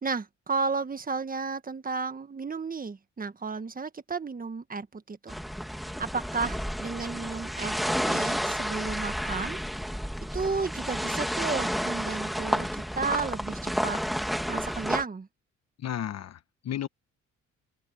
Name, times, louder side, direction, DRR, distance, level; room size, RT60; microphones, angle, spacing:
voice 1, 0.0-5.3 6.0-9.6 10.3-14.0 14.5-15.3, right 4 dB, 30° right, 1.5 m, -33 dB
sound 1, 5.3-15.0, equal, ahead, 2.0 m, -31 dB
voice 2, 15.8-16.9, left 10 dB, 60° left, 1.3 m, -33 dB
open air
cardioid pair, 90°, 30 cm